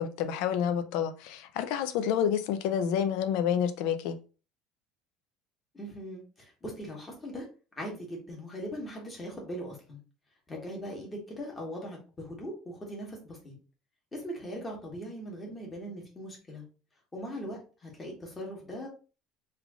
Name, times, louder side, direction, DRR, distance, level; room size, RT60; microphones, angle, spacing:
voice 1, 0.0-4.2, left 8 dB, 70° left, 0.5 m, -29 dB
voice 2, 5.7-7.5 7.8-10.0 10.5-13.5 14.1-16.6 17.1-18.9, equal, 15° left, 1.2 m, -40 dB
3.3 x 2.5 x 3.5 m
cardioid pair, 155°, 0 cm